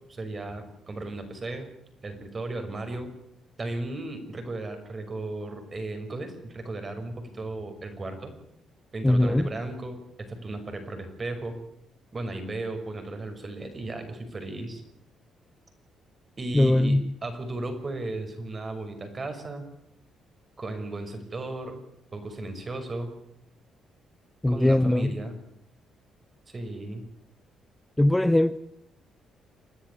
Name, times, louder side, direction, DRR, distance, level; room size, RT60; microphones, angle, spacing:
voice 1, 0.1-1.7 2.0-3.1 3.6-8.4 8.9-11.6 12.1-14.8 16.4-19.7 20.6-21.8 22.1-23.1 24.5-25.4 26.5-27.0, right 2 dB, 35° right, 5.8 m, -35 dB
voice 2, 9.0-9.5 16.5-17.0 24.4-25.1 28.0-28.6, left 1 dB, 10° left, 0.8 m, -21 dB
28.5 x 10.5 x 10.0 m
cardioid pair, 90°, 0 cm